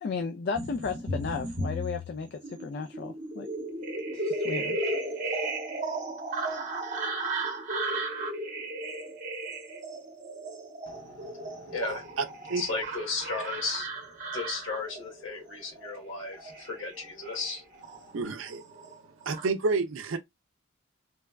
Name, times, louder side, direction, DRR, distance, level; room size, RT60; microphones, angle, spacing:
voice 1, 0.0-3.5 4.1-4.8, left 4 dB, 50° left, 0.3 m, -34 dB
sound 1, 0.5-18.3 18.6-19.5, right 2 dB, 40° right, 0.8 m, -35 dB
voice 2, 10.9-12.2 12.6-14.0 14.3-17.6, left 3 dB, 70° left, 1.4 m, -35 dB
voice 3, 18.1-18.7 19.2-20.2, right 4 dB, 75° right, 0.5 m, -29 dB
3.2 x 2.2 x 2.3 m
head